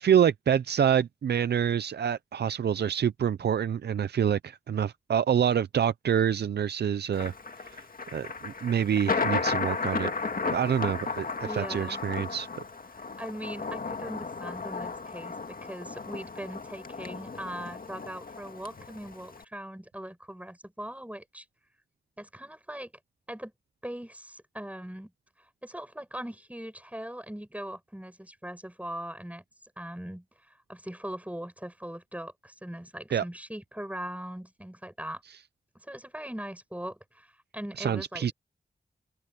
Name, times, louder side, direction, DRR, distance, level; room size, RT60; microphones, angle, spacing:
voice 1, 0.0-7.3 7.6-7.8 8.1-10.1 10.5-12.5 33.1-33.2 37.8-38.3, right 8 dB, 85° right, 0.5 m, -26 dB
Thunder, 7.2-19.4, left 4 dB, 60° left, 2.0 m, -34 dB
voice 2, 11.4-12.0 12.9-21.5 22.2-22.9 23.3-23.5 23.8-25.1 25.4-29.4 29.8-35.2 35.7-38.3, right 1 dB, 10° right, 7.4 m, -40 dB
open air
cardioid pair, 50°, 17 cm